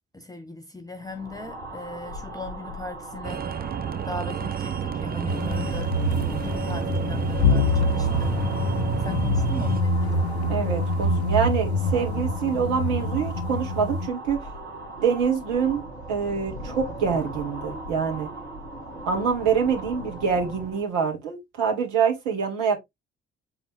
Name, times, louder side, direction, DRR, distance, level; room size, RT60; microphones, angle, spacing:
voice 1, 0.1-3.5 4.1-8.3 9.0-10.2, left 2 dB, 10° left, 1.1 m, -38 dB
sound 1, 1.0-20.9, right 1 dB, 85° right, 1.1 m, -38 dB
sound 2, 3.2-9.8, right 8 dB, 30° right, 0.6 m, -30 dB
sound 3, 5.3-14.1, left 2 dB, 85° left, 0.7 m, -25 dB
voice 2, 10.5-14.5 15.0-15.8 16.1-18.3 19.1-22.8, right 6 dB, 65° right, 2.1 m, -25 dB
8.0 x 3.9 x 3.4 m
figure-of-eight pair, 40°, 31 cm